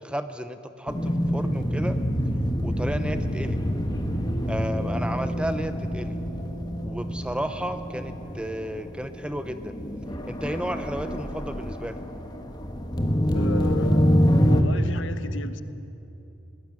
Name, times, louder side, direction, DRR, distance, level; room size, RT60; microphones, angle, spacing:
voice 1, 0.0-2.0 2.6-3.6 4.5-6.2 6.8-9.7 10.2-12.0, equal, 5° right, 10 dB, 0.7 m, -33 dB
sound 1, 0.9-14.6, equal, 20° left, 1.3 m, -26 dB
voice 2, 13.3-14.2 14.5-15.6, left 3 dB, 70° left, 11 dB, 1.0 m, -34 dB
21.5 x 18.0 x 8.9 m, 2.9 s
head